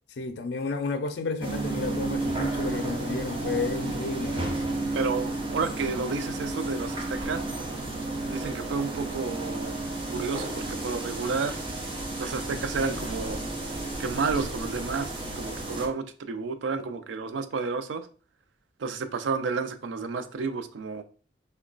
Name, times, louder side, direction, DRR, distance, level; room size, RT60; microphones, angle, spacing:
voice 1, 0.2-4.5, left 3 dB, 65° left, 0.4 m, -32 dB
sound 1, 1.4-15.9, right 2 dB, 30° right, 0.6 m, -32 dB
voice 2, 4.9-7.4 8.3-11.6 12.2-13.4 14.0-18.1 18.8-21.0, right 4 dB, 85° right, 0.4 m, -31 dB
3.0 x 2.2 x 3.8 m
head